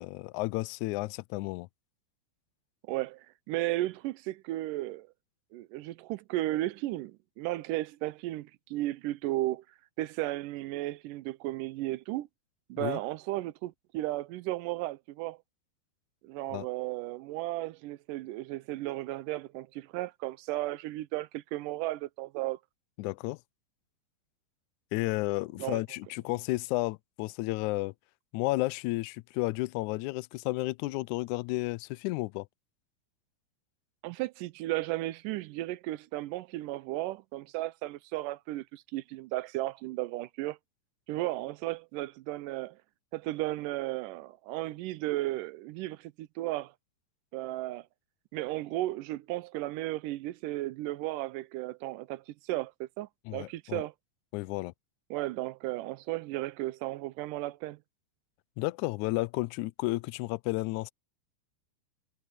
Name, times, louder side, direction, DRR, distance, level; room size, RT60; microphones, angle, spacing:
voice 1, 0.0-1.7 12.8-13.0 16.5-16.7 23.0-23.4 24.9-27.9 28.3-32.5 53.3-53.8 54.3-54.7 58.6-60.9, left 21 dB, 85° left, 1.7 m, -32 dB
voice 2, 2.9-5.1 5.5-9.6 10.0-12.3 12.7-15.4 16.2-22.6 25.6-25.8 34.0-40.6 41.1-42.8 43.1-46.7 47.3-47.9 48.3-53.9 55.1-57.8, right 17 dB, 80° right, 2.1 m, -34 dB
omnidirectional pair, 4.0 m